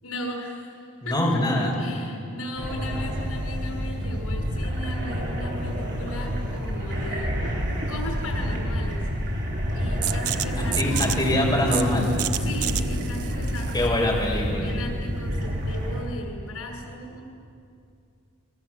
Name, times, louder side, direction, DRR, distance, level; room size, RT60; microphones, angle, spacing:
voice 1, 0.0-1.4 1.8-7.6 7.9-9.1 9.7-11.2 12.4-14.0 14.6-17.2, left 1 dB, 90° left, 1 dB, 6.6 m, -37 dB
voice 2, 1.0-1.7 10.6-12.1 13.7-14.7, left 1 dB, 20° left, -3 dB, 5.4 m, -24 dB
sound 1, 2.6-16.0, equal, 55° right, 7.5 m, -28 dB
sound 2, 10.0-15.5, right 12 dB, 85° right, 0.8 m, -32 dB
29.5 x 22.5 x 7.7 m, 2.5 s
head